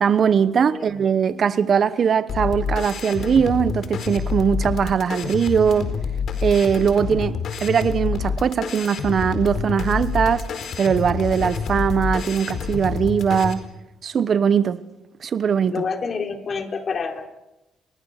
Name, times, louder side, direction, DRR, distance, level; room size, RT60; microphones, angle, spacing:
voice 1, 0.0-5.9 6.4-10.5 10.8-13.6 14.0-14.8 15.2-15.8, right 7 dB, 50° right, 1.1 m, -20 dB
sound 1, 2.3-13.5, left 6 dB, 65° left, 4.3 m, -27 dB
voice 2, 15.7-17.3, left 5 dB, 45° left, 3.9 m, -27 dB
30.0 x 24.0 x 6.7 m
cardioid pair, 90°, 0 cm